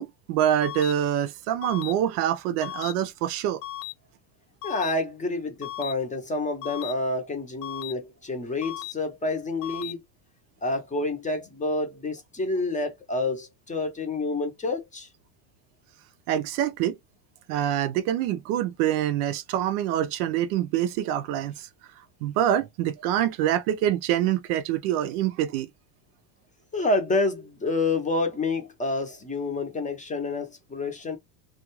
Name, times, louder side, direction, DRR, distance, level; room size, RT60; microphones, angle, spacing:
voice 1, 0.0-3.6 16.3-17.0 17.5-21.7 22.2-25.7, right 11 dB, 65° right, 0.6 m, -25 dB
sound 1, 0.6-0.9 1.6-1.9 2.6-2.9 3.6-3.9 4.6-4.9 5.6-5.9 6.6-6.9 7.6-7.9 8.6-8.9 9.6-9.9, left 14 dB, 55° left, 0.5 m, -36 dB
voice 2, 4.6-10.0 10.6-15.1 26.7-31.2, left 2 dB, 15° left, 0.7 m, -28 dB
2.3 x 2.3 x 3.0 m
supercardioid pair, 110°, 48 cm